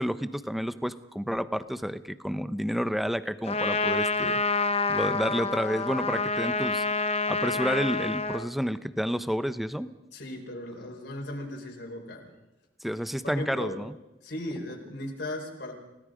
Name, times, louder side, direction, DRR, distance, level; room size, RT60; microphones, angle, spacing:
voice 1, 0.0-4.4 4.9-6.8 7.3-9.9 12.8-13.9, equal, ahead, 13 dB, 0.7 m, -30 dB
Trumpet, 3.5-8.5, left 3 dB, 35° left, 0.9 m, -28 dB
voice 2, 10.1-12.3 13.2-13.8 14.2-15.7, left 1 dB, 70° left, 0 dB, 4.6 m, -37 dB
29.5 x 17.5 x 5.1 m, 0.97 s
head